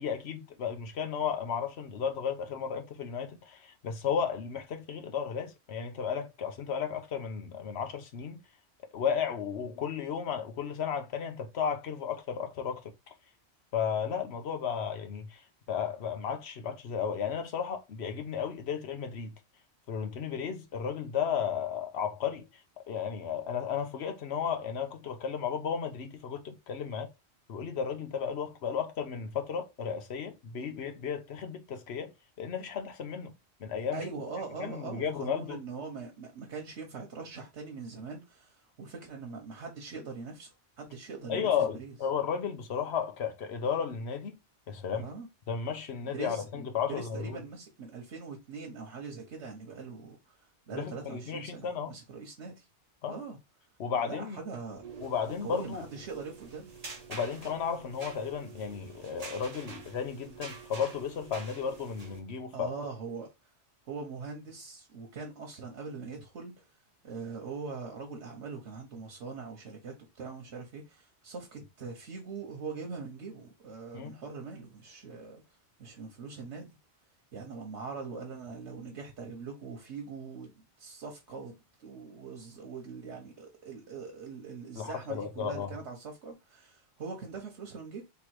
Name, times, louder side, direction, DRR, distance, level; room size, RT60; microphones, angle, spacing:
voice 1, 0.0-8.4 8.9-12.9 13.7-15.4 15.7-19.3 19.9-22.4 22.9-27.1 27.5-32.1 32.4-33.3 33.6-34.1 34.6-35.6 41.3-44.4 44.7-45.1 45.5-47.4 50.7-52.0 53.0-53.2 53.8-54.4 55.0-55.8 57.1-62.7 73.9-74.2 84.8-85.7, left 7 dB, 70° left, 1.1 m, -34 dB
voice 2, 33.9-41.9 44.9-45.3 46.0-52.7 53.1-53.4 54.0-54.8 55.3-56.7 62.5-63.3 63.9-66.7 67.0-75.4 75.8-76.7 77.3-88.0, right 4 dB, 85° right, 1.2 m, -42 dB
sound 1, 54.8-62.2, right 4 dB, 35° right, 1.0 m, -47 dB
3.4 x 3.1 x 4.6 m
omnidirectional pair, 1.1 m